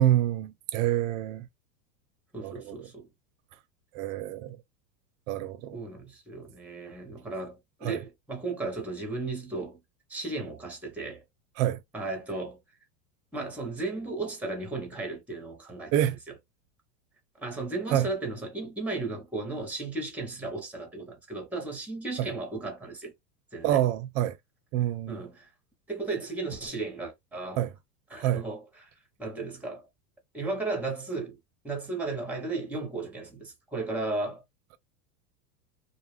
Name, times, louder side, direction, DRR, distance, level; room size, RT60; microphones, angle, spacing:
voice 1, 0.0-1.5 2.4-2.8 3.9-4.6 5.3-5.8 7.8-8.0 11.6-11.8 15.9-16.2 17.9-18.1 22.2-22.3 23.6-24.4 24.7-25.2 27.6-27.7 28.2-28.4, right 12 dB, 60° right, 0.6 m, -26 dB
voice 2, 2.3-3.1 5.7-9.8 10.1-11.2 11.9-12.6 13.3-15.9 17.4-23.1 23.5-23.8 25.1-25.5 25.9-27.6 28.1-28.9 29.2-29.9 30.3-31.4 31.6-34.4, right 3 dB, 5° right, 0.9 m, -35 dB
2.2 x 2.1 x 3.2 m
supercardioid pair, 115°, 46 cm